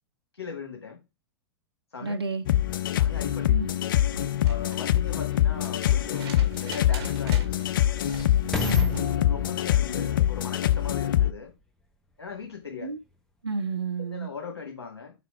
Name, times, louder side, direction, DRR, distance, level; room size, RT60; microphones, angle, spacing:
voice 1, 0.3-1.0 1.9-2.1 3.0-3.8 4.4-7.7 9.1-11.5 12.2-12.9 14.1-15.1, left 6 dB, 80° left, 1.4 m, -39 dB
voice 2, 2.0-2.4 3.5-3.7 8.6-9.1 12.8-13.0 13.4-14.3, right 4 dB, 80° right, 0.5 m, -31 dB
sound 1, 2.5-11.3, left 12 dB, 55° left, 0.4 m, -24 dB
sound 2, 4.3-9.1 10.8-10.9, right 5 dB, 35° right, 2.0 m, -45 dB
sound 3, 5.5-5.6 6.3-11.6 12.3-12.4, left 3 dB, 5° left, 1.1 m, -37 dB
5.6 x 4.1 x 4.7 m
figure-of-eight pair, 100°, 13 cm